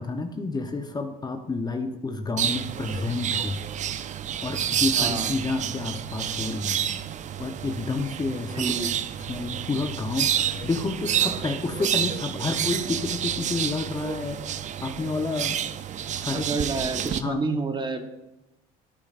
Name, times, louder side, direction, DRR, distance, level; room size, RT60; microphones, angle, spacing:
voice 1, 0.0-3.6 4.4-6.9 7.4-8.7 9.3-14.4 14.8-15.6 16.1-16.6 17.2-17.4, left 3 dB, 20° left, 6 dB, 0.9 m, -30 dB
sound 1, 2.4-17.2, right 9 dB, 40° right, 0.6 m, -29 dB
voice 2, 5.0-5.3 8.5-8.9 16.3-18.0, right 3 dB, 25° right, 7 dB, 1.1 m, -29 dB
12.0 x 9.7 x 2.5 m, 0.95 s
supercardioid pair, 85°, 19 cm